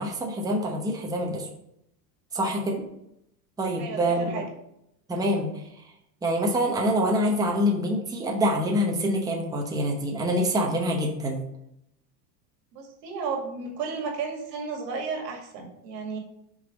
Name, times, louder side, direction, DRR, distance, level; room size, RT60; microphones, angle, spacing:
voice 1, 0.0-1.5 2.3-2.8 3.6-4.4 5.1-5.5 6.2-11.4, equal, 10° right, 0 dB, 0.8 m, -25 dB
voice 2, 3.8-4.4 12.7-16.2, right 5 dB, 90° right, 2 dB, 2.1 m, -33 dB
5.7 x 4.1 x 5.0 m, 0.79 s
supercardioid pair, 135°, 48 cm